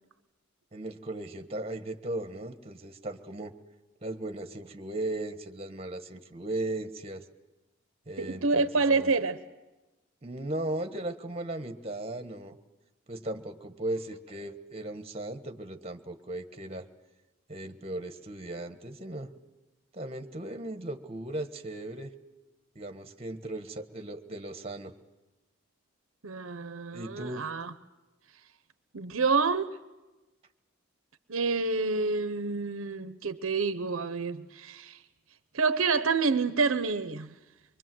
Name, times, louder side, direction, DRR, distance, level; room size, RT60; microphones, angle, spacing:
voice 1, 0.7-3.5 4.0-7.2 8.1-9.1 10.2-12.6 13.1-16.8 17.5-19.3 19.9-22.1 22.7-24.9 26.9-27.5, right 1 dB, 30° right, 1.4 m, -37 dB
voice 2, 8.2-9.4 26.2-27.7 28.9-29.8 31.3-35.0 35.5-37.3, right 4 dB, 75° right, 0.9 m, -28 dB
24.0 x 23.5 x 7.8 m
head